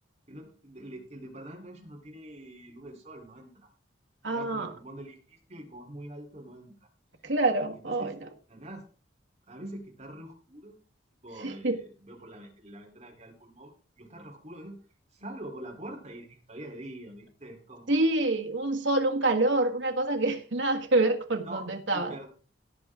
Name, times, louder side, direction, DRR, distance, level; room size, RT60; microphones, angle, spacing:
voice 1, 0.3-3.5 4.3-6.7 7.8-8.1 8.5-8.8 9.5-10.8 11.2-14.8 15.1-18.1 21.4-21.6 21.9-22.3, right 1 dB, 35° right, 1 dB, 3.8 m, -44 dB
voice 2, 4.2-4.7 7.2-8.1 11.4-11.8 17.9-22.1, right 2 dB, 75° right, 3 dB, 1.7 m, -26 dB
17.0 x 7.4 x 3.7 m, 0.39 s
head